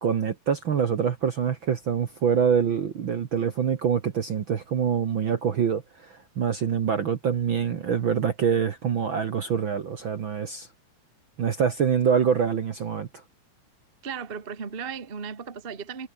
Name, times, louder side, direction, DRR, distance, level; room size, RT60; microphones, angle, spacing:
voice 1, 0.0-10.7 11.4-13.2, right 7 dB, 55° right, 1.5 m, -25 dB
voice 2, 14.0-16.1, right 6 dB, 30° right, 1.0 m, -35 dB
omnidirectional pair, 3.8 m